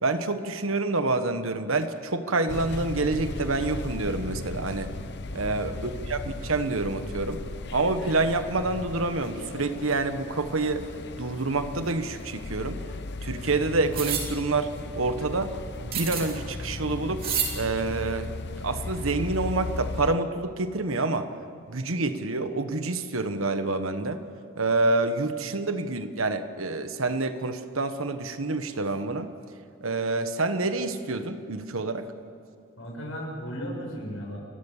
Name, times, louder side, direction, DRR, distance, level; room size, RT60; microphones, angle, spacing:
voice 1, 0.0-4.9 5.3-7.4 7.7-10.9 11.2-12.8 13.2-15.5 15.8-17.3 17.5-18.3 18.6-21.3 21.7-24.2 24.6-29.3 29.8-32.1, right 3 dB, 80° right, 9 dB, 1.3 m, -27 dB
sound 1, 2.5-20.2, left 2 dB, 55° left, 0.8 m, -36 dB
voice 2, 5.4-5.9 32.8-34.4, equal, 75° left, -1 dB, 6.9 m, -36 dB
sound 2, 13.9-14.3 15.9-16.4 17.2-17.5, right 7 dB, 45° right, 3.4 m, -28 dB
29.5 x 13.0 x 7.3 m, 2.6 s
head